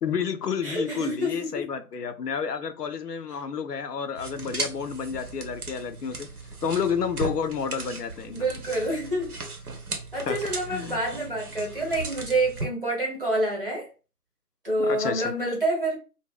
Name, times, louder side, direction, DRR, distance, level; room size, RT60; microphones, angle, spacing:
voice 1, 0.0-6.3 6.6-8.5 10.3-11.0 14.8-15.3, left 6 dB, 80° left, 0.6 m, -30 dB
voice 2, 0.6-1.7 8.3-9.4 10.1-13.9 14.6-16.0, right 1 dB, 35° right, 0.9 m, -27 dB
sound 1, 4.2-12.7, right 3 dB, 65° right, 0.8 m, -37 dB
2.3 x 2.0 x 3.5 m
figure-of-eight pair, 170°, 47 cm